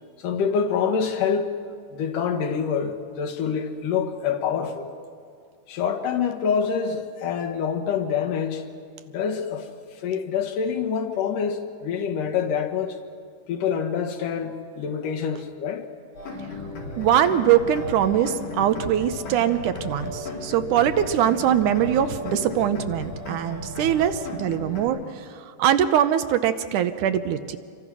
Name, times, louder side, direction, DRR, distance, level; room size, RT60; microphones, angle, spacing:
voice 1, 0.2-1.5 1.9-4.9 5.7-8.6 9.1-9.7 10.0-13.0 13.5-15.9, left 7 dB, 80° left, 3.1 m, -26 dB
sound 1, 16.1-24.8, left 1 dB, 65° left, 5.8 m, -35 dB
voice 2, 17.0-27.6, right 10 dB, 75° right, 2.3 m, -22 dB
27.5 x 24.5 x 6.2 m
omnidirectional pair, 3.7 m